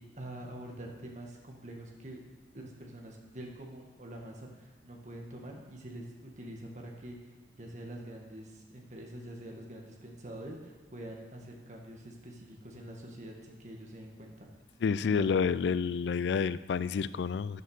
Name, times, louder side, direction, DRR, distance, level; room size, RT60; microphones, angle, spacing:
voice 1, 0.1-2.2 2.5-14.5 15.2-15.3, right 1 dB, 40° right, 0 dB, 1.9 m, -45 dB
voice 2, 14.8-17.6, left 6 dB, 75° left, 17 dB, 0.3 m, -29 dB
10.5 x 7.9 x 6.5 m, 1.3 s
head